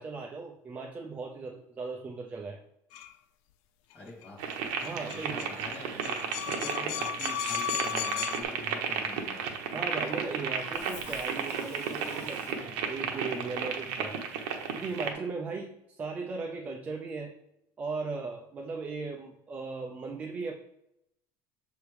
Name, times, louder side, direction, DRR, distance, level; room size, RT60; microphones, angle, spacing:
voice 1, 0.0-2.6 4.8-5.5 9.7-14.2 14.7-17.3 17.8-20.5, right 4 dB, 20° right, 0 dB, 0.5 m, -37 dB
sound 1, 2.9-3.1 4.2-4.3 4.5-4.6 4.8-8.4, left 9 dB, 65° left, 0.5 m, -35 dB
voice 2, 3.9-4.4 5.1-9.5, left 2 dB, 15° left, -5 dB, 2.1 m, -45 dB
sound 2, 4.4-15.1, right 6 dB, 75° right, 0.9 m, -34 dB
Cough, 10.0-12.9, left 3 dB, 35° left, 1.7 m, -48 dB
7.1 x 3.4 x 4.7 m, 0.82 s
cardioid pair, 175°, 8 cm